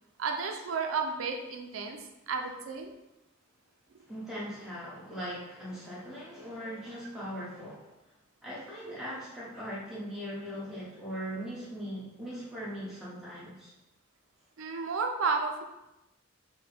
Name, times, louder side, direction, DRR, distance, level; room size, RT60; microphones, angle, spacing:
voice 1, 0.2-2.9 6.6-6.7 14.6-15.6, right 4 dB, 85° right, 4 dB, 0.5 m, -32 dB
voice 2, 4.1-7.9 8.4-13.7, equal, 5° right, -8 dB, 1.0 m, -40 dB
4.3 x 2.2 x 3.4 m, 0.95 s
head